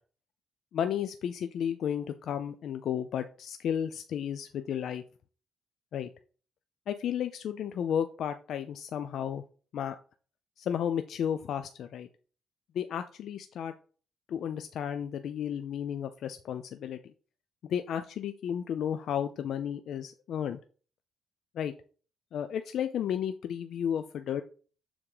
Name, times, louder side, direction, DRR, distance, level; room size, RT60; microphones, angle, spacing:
voice 1, 0.7-5.0 5.9-6.1 6.9-9.4 9.7-10.0 10.6-12.1 12.7-13.7 14.3-17.0 17.7-20.6 21.6-21.7 22.3-24.4, left 9 dB, 70° left, 9 dB, 0.5 m, -33 dB
7.1 x 3.6 x 4.9 m, 0.39 s
cardioid pair, 90°, 0 cm